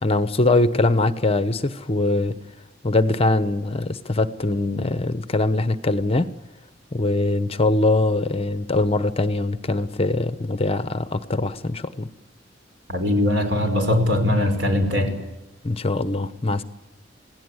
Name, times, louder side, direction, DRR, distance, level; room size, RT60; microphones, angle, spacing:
voice 1, 0.0-2.4 2.8-6.3 6.9-12.1 15.6-16.6, left 2 dB, 30° left, 1.0 m, -22 dB
voice 2, 12.9-15.2, left 1 dB, 70° right, 5.2 m, -21 dB
28.0 x 17.5 x 9.7 m
head